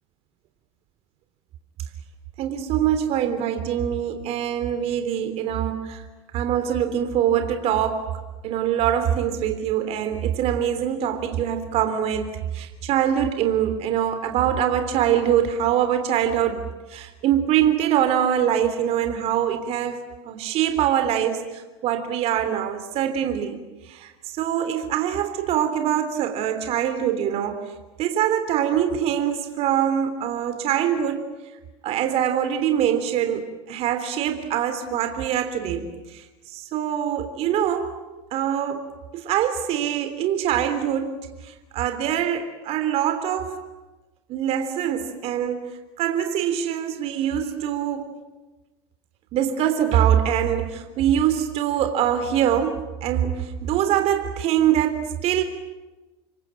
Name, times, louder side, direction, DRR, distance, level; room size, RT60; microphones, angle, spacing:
voice 1, 2.4-6.0 6.3-8.1 8.4-16.6 16.9-23.6 23.9-27.7 28.0-31.3 31.8-37.9 38.3-38.9 39.1-41.1 41.4-43.5 44.3-45.6 46.0-48.1 49.3-55.4, right 10 dB, 45° right, 8 dB, 3.4 m, -24 dB
27.5 x 23.5 x 9.2 m, 1.1 s
supercardioid pair, 115°, 14 cm